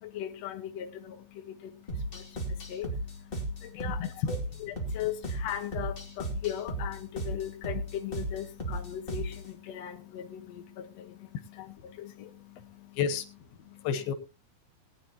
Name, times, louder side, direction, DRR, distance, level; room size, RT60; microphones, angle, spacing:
voice 1, 0.0-13.0 13.7-13.9, left 10 dB, 55° left, 2.1 m, -39 dB
sound 1, 1.9-9.5, right 1 dB, 20° left, 2.0 m, -36 dB
voice 2, 3.8-4.3 13.0-13.2 13.8-14.1, left 7 dB, 90° left, 3.2 m, -30 dB
20.0 x 9.8 x 2.9 m
omnidirectional pair, 4.2 m